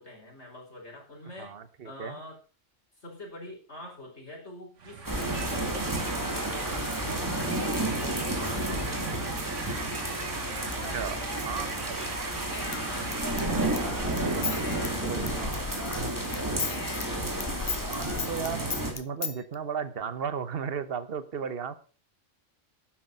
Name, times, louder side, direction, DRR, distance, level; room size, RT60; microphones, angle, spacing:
voice 1, 0.0-1.6 1.8-2.4 3.0-8.1 8.4-9.4 10.6-11.5, left 1 dB, 60° left, 0 dB, 5.2 m, -45 dB
voice 2, 1.4-2.2 10.9-11.7 13.8-15.6 17.8-21.8, right 7 dB, 50° right, 12 dB, 1.3 m, -36 dB
sound 1, 4.8-15.2, right 6 dB, 75° right, 1.7 m, -40 dB
sound 2, 5.1-18.9, right 1 dB, 15° right, 2.7 m, -31 dB
Human voice / Scissors, 12.3-16.1 16.3-19.4, left 5 dB, 35° left, 0.6 m, -36 dB
12.0 x 9.3 x 5.4 m, 0.37 s
omnidirectional pair, 1.3 m